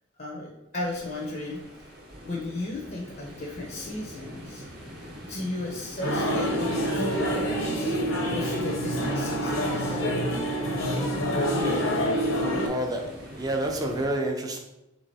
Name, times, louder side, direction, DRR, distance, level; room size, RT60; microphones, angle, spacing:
voice 1, 0.2-1.6 2.2-4.9 5.2-7.9 8.3-10.0, left 2 dB, 40° left, -2 dB, 0.6 m, -35 dB
sound 1, 0.7-14.1, equal, 45° right, 0.8 m, -43 dB
sound 2, 6.0-12.7, equal, 70° left, 0.8 m, -26 dB
voice 2, 12.6-14.6, right 1 dB, 20° right, 2 dB, 0.4 m, -29 dB
3.4 x 3.2 x 4.0 m, 0.95 s
head